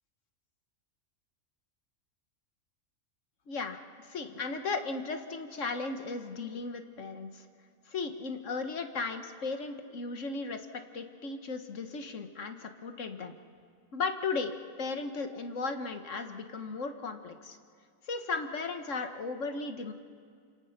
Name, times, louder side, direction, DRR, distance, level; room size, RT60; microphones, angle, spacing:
voice 1, 3.5-7.5 7.9-10.7 10.9-13.3 13.9-17.6 18.0-19.9, left 4 dB, 70° left, 7 dB, 1.7 m, -36 dB
27.0 x 27.0 x 5.9 m, 2.2 s
omnidirectional pair, 1.4 m